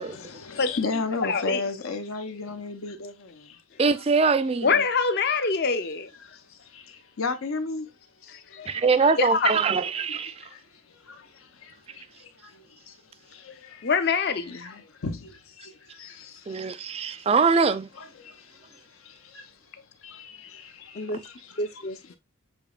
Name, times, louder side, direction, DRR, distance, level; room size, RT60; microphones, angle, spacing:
voice 1, 0.0-3.6 4.9-5.0 6.3-7.9 8.2-9.1 10.0-13.9 14.5-17.3 17.9-19.5 20.0-21.6, left 4 dB, 85° left, 0.8 m, -36 dB
voice 2, 1.3-1.6 4.6-6.1 8.5-8.7 9.2-9.5 13.8-14.8 20.9-21.2 21.6-22.2, left 4 dB, 50° left, 0.6 m, -25 dB
voice 3, 3.8-4.7 8.7-10.4 16.5-17.9, right 4 dB, 30° right, 0.3 m, -23 dB
6.8 x 3.0 x 2.4 m
head